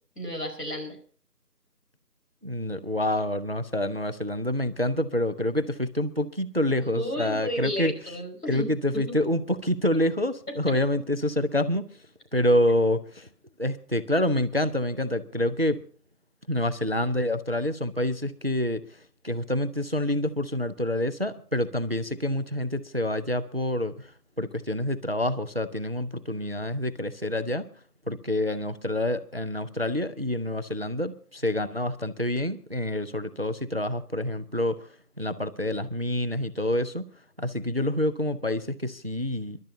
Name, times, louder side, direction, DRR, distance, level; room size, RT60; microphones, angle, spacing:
voice 1, 0.1-1.0 6.8-8.7, equal, 75° left, 4 dB, 5.3 m, -32 dB
voice 2, 2.4-7.9 8.5-11.9 12.3-13.3 13.6-15.8 16.5-18.8 19.2-24.1 24.4-27.7 28.1-34.8 35.2-37.0 37.4-39.6, left 1 dB, 40° right, 12 dB, 0.7 m, -27 dB
27.0 x 12.0 x 2.7 m, 0.42 s
figure-of-eight pair, 170°, 48 cm